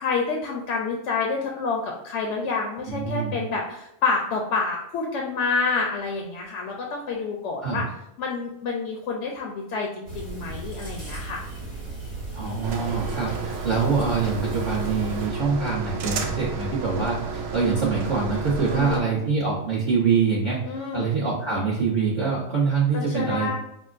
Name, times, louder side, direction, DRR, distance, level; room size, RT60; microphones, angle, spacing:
voice 1, 0.0-7.8 8.2-11.4 18.7-19.0 20.6-21.1 22.9-23.6, left 4 dB, 70° left, 0 dB, 0.9 m, -28 dB
voice 2, 2.9-3.4 7.6-7.8 12.3-20.6 20.9-23.6, right 5 dB, 40° right, -8 dB, 1.1 m, -24 dB
sound 1, 10.1-15.3, right 2 dB, 65° right, 1.5 m, -36 dB
sound 2, 12.6-19.0, right 5 dB, 85° right, 1.0 m, -31 dB
6.1 x 2.1 x 2.4 m, 0.82 s
omnidirectional pair, 1.3 m